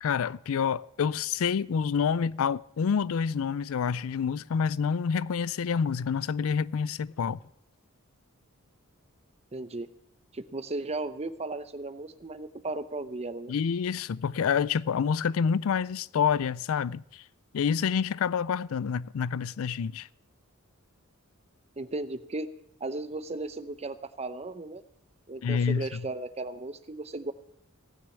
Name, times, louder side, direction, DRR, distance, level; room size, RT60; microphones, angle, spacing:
voice 1, 0.0-7.4 13.5-17.2 17.5-20.1 25.4-26.0, left 6 dB, 65° left, 0.4 m, -28 dB
voice 2, 9.5-9.9 10.3-13.5 21.8-22.5 22.8-24.8 25.3-27.3, right 2 dB, 30° right, 0.8 m, -35 dB
17.0 x 6.6 x 8.2 m
head